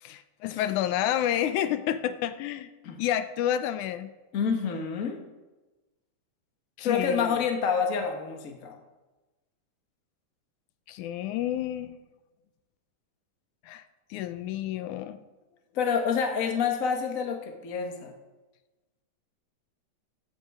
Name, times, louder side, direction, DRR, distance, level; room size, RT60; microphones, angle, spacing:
voice 1, 0.0-2.7 3.0-4.1 6.8-7.4 10.9-12.0 13.6-13.8 14.1-15.2, left 11 dB, 85° left, 12 dB, 2.1 m, -29 dB
voice 2, 4.3-5.2 6.8-8.8 15.7-18.1, left 6 dB, 40° left, 3 dB, 1.3 m, -28 dB
16.5 x 10.5 x 4.8 m, 1.2 s
omnidirectional pair, 3.4 m